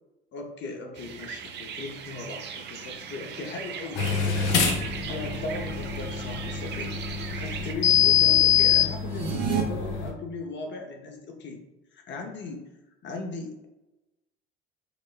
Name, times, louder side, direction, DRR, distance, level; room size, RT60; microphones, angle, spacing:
voice 1, 0.3-4.1 5.1-7.0 7.3-11.6 11.9-12.6 13.0-13.7, left 3 dB, 40° left, 2 dB, 0.7 m, -38 dB
sound 1, 0.9-7.7, right 7 dB, 40° right, 0.4 m, -39 dB
sound 2, 4.0-10.1, left 8 dB, 70° left, 0.6 m, -25 dB
sound 3, 9.0-9.6, right 9 dB, 55° right, 0.8 m, -28 dB
5.0 x 2.1 x 2.2 m, 1.0 s
hypercardioid pair, 70°, 30 cm